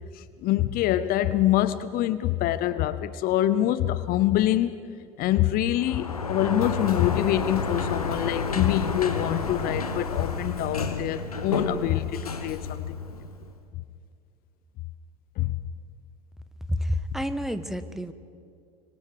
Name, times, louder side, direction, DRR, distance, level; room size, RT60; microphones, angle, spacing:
voice 1, 0.2-4.7 5.2-12.1 12.4-13.0 15.4-15.6, left 13 dB, 55° left, 14 dB, 0.8 m, -25 dB
Sliding door, 5.8-13.5, left 4 dB, 90° left, 1.3 m, -30 dB
voice 2, 16.7-18.1, equal, ahead, 10 dB, 1.4 m, -29 dB
26.0 x 25.0 x 5.0 m, 2.3 s
hypercardioid pair, 65°, 18 cm